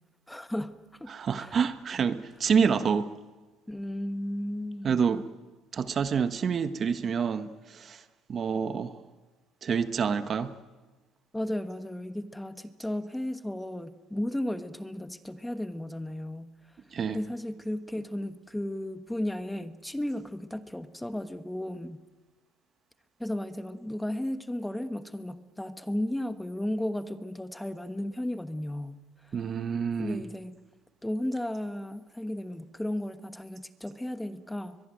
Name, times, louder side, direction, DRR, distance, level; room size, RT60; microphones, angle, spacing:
voice 1, 0.3-1.1 1.4-1.6 3.7-5.0 11.3-16.8 17.1-22.0 23.2-29.4 30.0-30.6 31.0-34.8, left 1 dB, 5° left, 1.2 m, -34 dB
voice 2, 1.1-3.1 4.8-5.2 5.7-8.0 8.3-8.9 9.6-10.5 16.9-17.2 29.3-30.2, right 6 dB, 40° right, 1.3 m, -27 dB
22.0 x 22.0 x 9.2 m
supercardioid pair, 95°, 0 cm